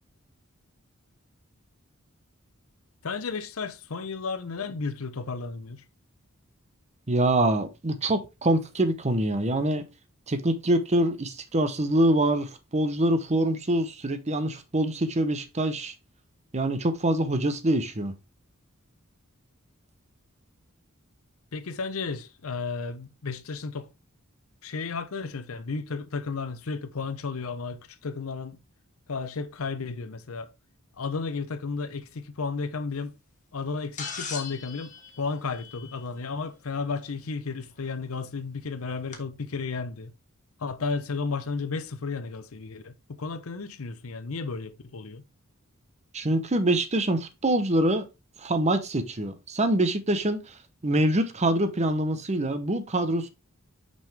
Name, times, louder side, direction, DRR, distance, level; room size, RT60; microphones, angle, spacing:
voice 1, 3.0-5.8 21.5-23.9 24.6-28.6 29.1-30.5 31.0-33.1 33.5-40.1 40.6-45.2, left 4 dB, 75° left, 0.7 m, -33 dB
voice 2, 7.1-9.8 10.3-15.9 16.5-18.1 46.1-48.1 48.4-53.3, right 1 dB, 30° right, 0.8 m, -25 dB
sound 1, 34.0-36.3 37.9-38.0 39.1-39.2, left 6 dB, 35° left, 1.5 m, -39 dB
6.1 x 5.4 x 3.3 m
head